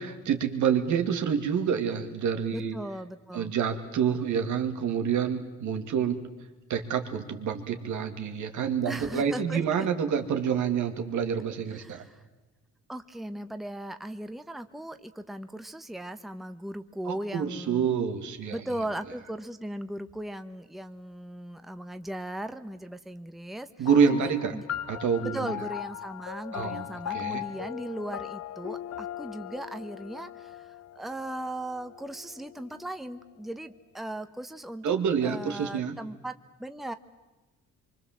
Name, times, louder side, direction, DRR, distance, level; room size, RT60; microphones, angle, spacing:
voice 1, 0.0-2.7 3.3-6.2 6.7-12.0 17.1-18.6 23.8-24.6 24.9-25.5 26.5-26.8 27.1-27.4 34.8-36.0, right 7 dB, 75° right, 6 dB, 2.5 m, -27 dB
voice 2, 2.5-3.5 8.8-9.9 11.7-12.2 12.9-17.9 18.5-24.6 25.2-34.9 35.2-36.9, right 1 dB, ahead, 9 dB, 1.0 m, -38 dB
sound 1, 23.9-32.7, left 12 dB, 55° left, 1.0 m, -39 dB
25.0 x 24.5 x 7.5 m, 1.1 s
cardioid pair, 90°, 30 cm